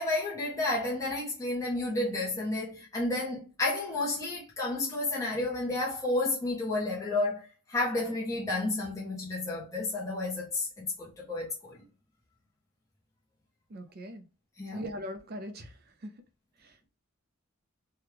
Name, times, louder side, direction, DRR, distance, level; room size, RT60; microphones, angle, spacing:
voice 1, 0.0-11.8 14.6-14.8, left 2 dB, 15° left, 0.7 m, -31 dB
voice 2, 13.7-14.2 14.7-16.1 16.6-16.8, equal, 45° right, 0.5 m, -41 dB
3.4 x 2.3 x 3.0 m
head